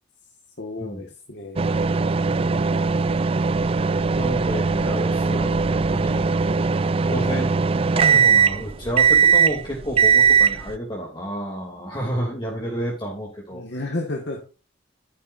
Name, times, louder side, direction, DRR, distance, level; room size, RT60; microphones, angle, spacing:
voice 1, 0.6-1.9 12.6-13.1 13.5-14.4, left 2 dB, 65° left, 2 dB, 1.8 m, -33 dB
sound 1, 1.6-10.8, right 5 dB, 30° right, 0.4 m, -20 dB
voice 2, 4.1-6.3 7.1-7.5 7.9-13.6, equal, 25° left, -2 dB, 2.9 m, -30 dB
12.0 x 9.4 x 2.7 m, 0.32 s
head